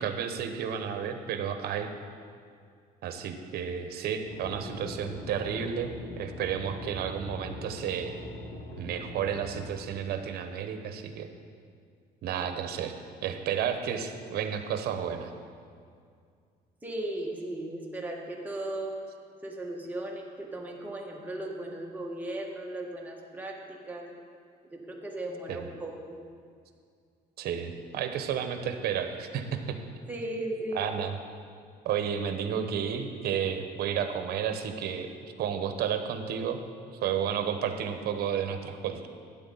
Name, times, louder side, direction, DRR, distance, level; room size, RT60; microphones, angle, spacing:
voice 1, 0.0-1.9 3.0-8.1 8.8-11.3 12.2-13.0 13.2-15.3 25.5-25.7 27.4-29.8 30.7-31.1 31.8-35.1 35.4-36.6 37.0-39.1, right 8 dB, 70° right, 7 dB, 0.9 m, -32 dB
sound 1, 4.2-9.8, left 1 dB, 65° left, 1.6 m, -42 dB
voice 2, 16.8-19.0 19.4-24.1 24.7-26.2 30.1-30.9, right 1 dB, 10° right, -1 dB, 1.5 m, -36 dB
12.0 x 9.0 x 3.9 m, 2.2 s
cardioid pair, 110°, 17 cm